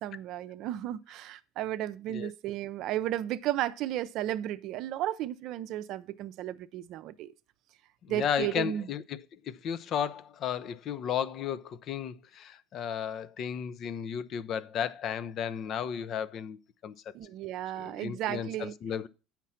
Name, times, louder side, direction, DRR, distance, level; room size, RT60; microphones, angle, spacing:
voice 1, 0.0-7.3 8.1-8.9 17.1-18.7, right 13 dB, 65° right, 0.5 m, -34 dB
voice 2, 8.0-17.1 17.8-19.1, left 8 dB, 50° left, 0.6 m, -34 dB
7.4 x 5.9 x 5.6 m
supercardioid pair, 85°, 0 cm